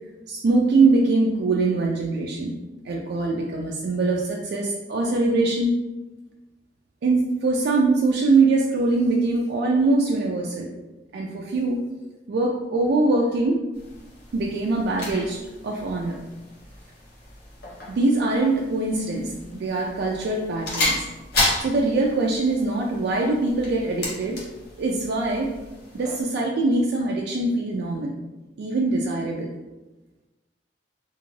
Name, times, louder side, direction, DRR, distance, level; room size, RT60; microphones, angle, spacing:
voice 1, 0.3-2.6 2.8-5.7 7.0-10.7 11.1-11.9 12.3-13.6 14.3-16.2 17.9-21.0 21.6-24.4 24.8-25.5 25.9-28.1 28.6-29.5, right 3 dB, 65° right, -1 dB, 0.3 m, -23 dB
sound 1, 13.7-26.2, left 2 dB, 60° left, 0.9 m, -33 dB
2.5 x 2.4 x 3.1 m, 1.1 s
head